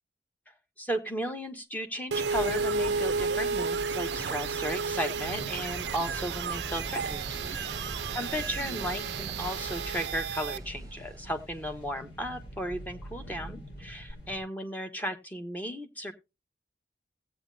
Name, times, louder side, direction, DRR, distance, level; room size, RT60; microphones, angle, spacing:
voice 1, 0.8-7.8 8.1-16.1, equal, 10° left, 6 dB, 1.0 m, -35 dB
sound 1, 2.1-10.6, right 5 dB, 80° right, 0.4 m, -32 dB
sound 2, 2.3-14.4, right 1 dB, 85° left, 3.9 m, -46 dB
sound 3, 3.9-11.9 14.1-14.2, right 2 dB, 20° right, 0.9 m, -43 dB
16.5 x 8.3 x 2.6 m, 0.25 s
head